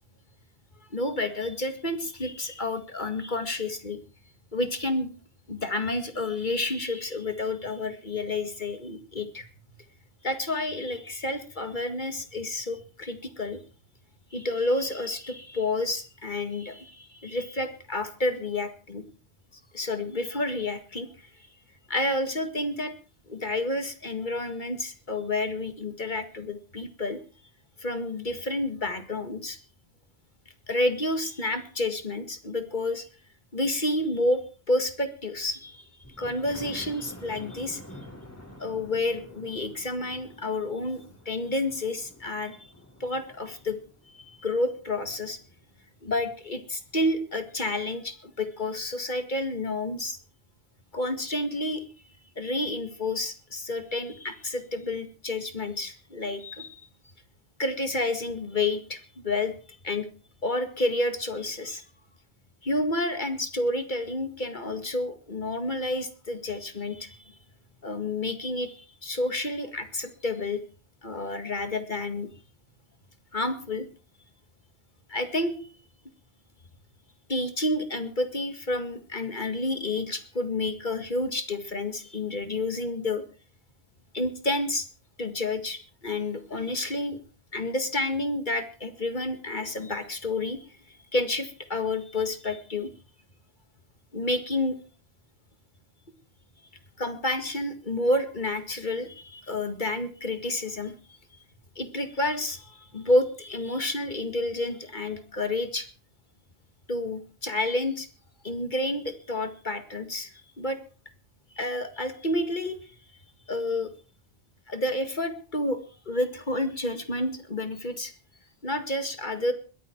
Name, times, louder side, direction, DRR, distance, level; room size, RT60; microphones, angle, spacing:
voice 1, 0.9-4.0 4.5-5.1 5.5-9.5 10.2-13.6 14.3-19.0 19.7-21.1 21.9-22.9 23.3-27.2 27.8-29.6 30.7-33.1 33.5-35.9 36.2-37.8 38.6-42.7 43.0-43.8 44.1-45.4 46.0-50.2 50.9-51.8 52.4-56.9 57.6-59.5 59.8-60.1 60.4-61.8 62.6-67.3 67.8-70.6 71.0-72.3 73.3-73.9 75.1-75.6 77.3-83.2 84.1-84.9 85.2-87.2 87.5-90.6 91.1-92.9 94.1-94.7 97.0-100.9 101.8-105.9 106.9-108.1 108.4-110.3 110.6-110.8 111.6-112.8 113.5-113.9 114.7-115.8 116.1-118.1 118.6-119.5, left 2 dB, 50° left, 8 dB, 2.1 m, -30 dB
Thunder, 36.0-45.8 46.3-46.4 46.8-46.9 47.2-47.3, left 1 dB, 15° left, 4.5 m, -48 dB
21.5 x 13.5 x 4.6 m, 0.38 s
omnidirectional pair, 1.0 m